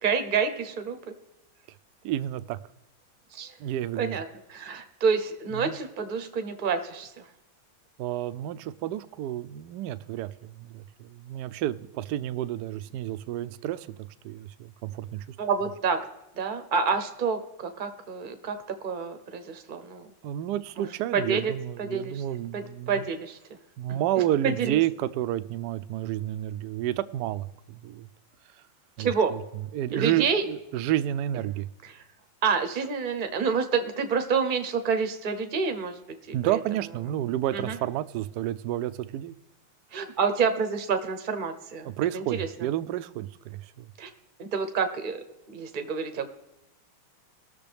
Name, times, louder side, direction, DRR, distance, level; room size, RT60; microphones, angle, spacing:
voice 1, 0.0-1.0 3.3-3.5 4.0-4.2 4.5-7.1 15.4-16.0 16.4-18.6 18.8-20.1 20.8-21.5 21.8-22.2 22.5-23.4 23.9-24.0 24.6-24.8 29.0-29.3 29.9-30.4 32.4-35.9 36.4-36.6 37.5-37.8 39.9-42.5 44.0-44.1 44.4-45.2 45.5-46.3, right 5 dB, 45° right, 8 dB, 0.6 m, -28 dB
voice 2, 2.0-2.6 3.6-4.2 5.5-5.8 8.0-15.4 20.2-23.1 23.8-28.1 29.0-29.4 29.7-31.7 36.3-39.3 41.8-43.9, right 13 dB, 80° right, 13 dB, 0.9 m, -30 dB
19.5 x 6.7 x 3.4 m, 0.93 s
omnidirectional pair, 2.3 m